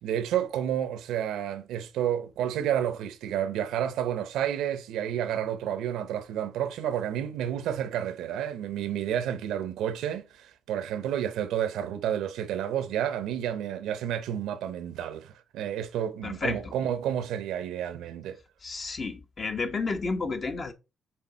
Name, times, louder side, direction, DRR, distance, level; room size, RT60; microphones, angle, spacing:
voice 1, 0.0-18.4, right 10 dB, 85° right, 0.8 m, -30 dB
voice 2, 16.2-16.6 18.6-20.7, left 4 dB, 40° left, 1.1 m, -31 dB
6.5 x 3.9 x 4.0 m
cardioid pair, 90°, 0 cm